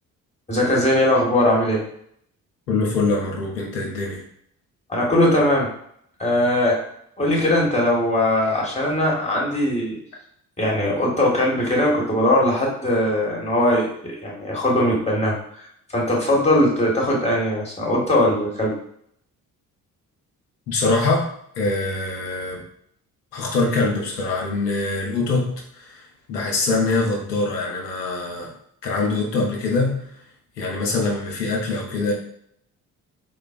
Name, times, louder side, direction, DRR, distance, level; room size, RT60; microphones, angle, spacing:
voice 1, 0.5-1.8 4.9-5.7 6.2-6.8 7.2-10.0 10.6-18.7, left 1 dB, 15° left, -3 dB, 1.4 m, -20 dB
voice 2, 2.7-4.2 20.7-21.3 21.6-22.6 23.3-28.5 28.8-30.1 30.6-32.1, left 3 dB, 85° left, -1 dB, 0.7 m, -23 dB
3.8 x 2.2 x 2.5 m, 0.68 s
figure-of-eight pair, 40°, 47 cm